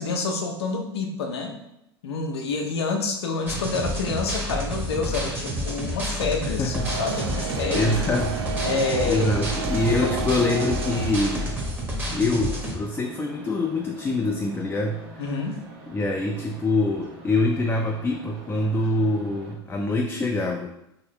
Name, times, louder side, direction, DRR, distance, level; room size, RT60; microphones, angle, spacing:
voice 1, 0.0-1.6 2.0-8.0 8.6-9.3 10.0-10.1 15.2-15.6, left 4 dB, 80° left, 3 dB, 0.7 m, -28 dB
sound 1, 3.5-12.7, equal, 15° right, 0.9 m, -30 dB
voice 2, 6.4-6.9 7.7-8.4 9.0-11.6 12.1-15.2 15.9-20.7, left 2 dB, 15° left, 1 dB, 0.4 m, -25 dB
sound 2, 6.7-11.9, right 7 dB, 80° right, 0.4 m, -32 dB
sound 3, 12.3-19.6, right 2 dB, 55° right, 1.2 m, -45 dB
3.2 x 2.9 x 3.0 m, 0.83 s
hypercardioid pair, 90°, 13 cm